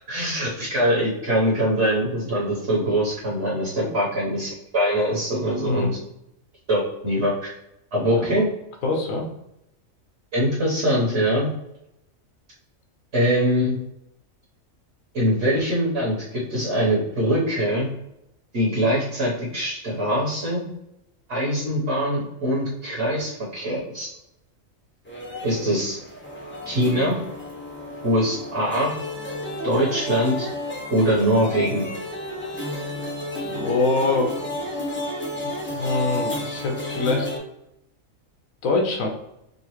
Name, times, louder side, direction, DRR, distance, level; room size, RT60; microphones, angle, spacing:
voice 1, 0.1-5.9 6.7-7.5 7.9-8.5 10.3-11.5 13.1-13.8 15.1-17.9 18.5-20.6 21.3-24.1 25.4-26.0 26.6-27.2 28.0-28.9 29.6-30.5 30.9-31.9, equal, 55° right, -6 dB, 1.4 m, -23 dB
voice 2, 8.8-9.2 33.4-34.3 35.7-37.3 38.6-39.1, left 3 dB, 85° left, 1 dB, 1.2 m, -24 dB
sound 1, 25.1-37.4, left 1 dB, 15° left, 0.4 m, -32 dB
3.8 x 2.4 x 3.0 m, 0.83 s
omnidirectional pair, 1.4 m